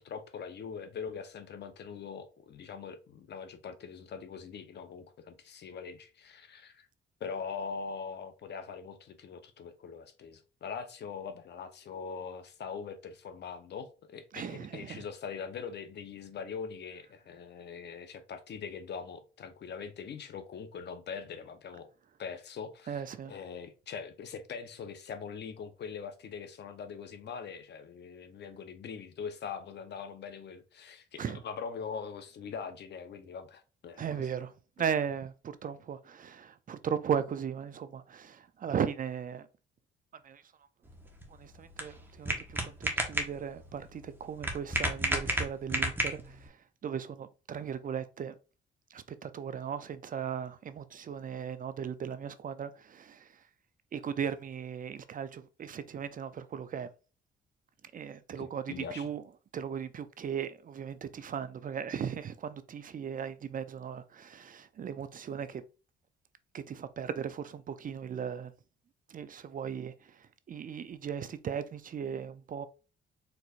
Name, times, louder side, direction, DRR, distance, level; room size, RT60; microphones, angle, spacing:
voice 1, 0.0-6.9 7.2-21.9 22.2-23.0 23.3-34.3 58.4-59.1, left 6 dB, 60° left, 0.9 m, -42 dB
voice 2, 14.3-15.0 22.9-23.4 31.2-31.4 34.0-39.5 40.2-40.4 41.3-48.3 48.9-53.4 53.9-56.9 57.9-59.2 59.5-65.6 66.5-68.5 69.1-72.7, right 7 dB, 45° right, 0.5 m, -37 dB
sound 1, 40.8-46.5, right 1 dB, 10° right, 1.3 m, -33 dB
4.5 x 4.0 x 2.5 m
cardioid pair, 90°, 20 cm